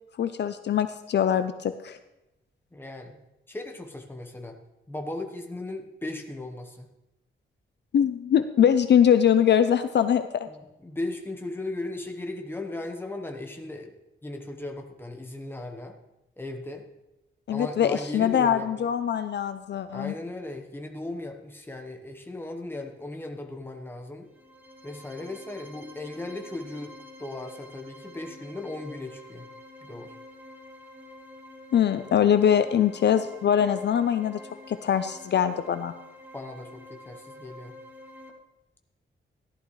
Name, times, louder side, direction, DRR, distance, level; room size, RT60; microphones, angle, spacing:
voice 1, 0.2-2.0 7.9-10.5 17.5-20.1 31.7-34.4 34.7-35.9, left 9 dB, 60° left, 10 dB, 0.5 m, -22 dB
voice 2, 2.7-3.2 3.5-4.6 4.9-6.9 10.5-13.9 14.2-16.0 16.4-16.9 17.5-18.9 19.9-24.3 24.8-26.9 27.2-29.5 29.8-30.1 36.3-37.7, left 2 dB, 10° left, 3 dB, 1.0 m, -37 dB
sound 1, 24.2-38.3, left 1 dB, 10° right, 1.2 m, -48 dB
14.5 x 11.5 x 3.2 m, 0.94 s
wide cardioid pair, 175°, 21 cm